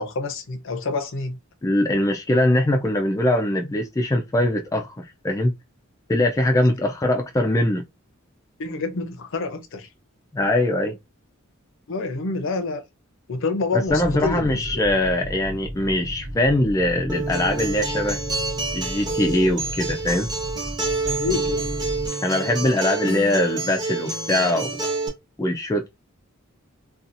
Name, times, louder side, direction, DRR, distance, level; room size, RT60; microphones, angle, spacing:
voice 1, 0.0-1.4 8.6-9.9 11.9-12.8 13.3-14.8 21.2-21.8, left 3 dB, 65° left, 0.6 m, -27 dB
voice 2, 1.6-5.5 6.1-7.8 10.3-11.0 13.7-18.2 18.7-20.3 22.2-24.8 25.4-25.9, left 1 dB, 15° left, 0.3 m, -22 dB
sound 1, 13.9-22.1, right 1 dB, 65° right, 0.8 m, -35 dB
Acoustic guitar, 17.1-25.1, right 3 dB, 20° right, 0.9 m, -28 dB
2.7 x 2.3 x 2.5 m
head